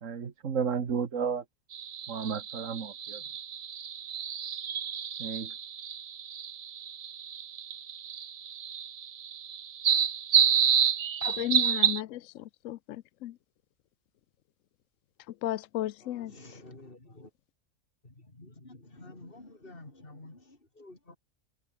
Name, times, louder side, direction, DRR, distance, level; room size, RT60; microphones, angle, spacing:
voice 1, 0.0-1.4 2.1-3.2 5.2-5.5, right 6 dB, 75° right, 1.9 m, -32 dB
sound 1, 1.7-12.0, right 8 dB, 45° right, 0.6 m, -29 dB
voice 2, 11.2-12.2 12.6-13.3 15.4-16.3, left 13 dB, 80° left, 1.0 m, -34 dB
voice 3, 16.0-17.3 18.0-21.2, left 2 dB, 45° left, 4.3 m, -50 dB
omnidirectional pair, 1.3 m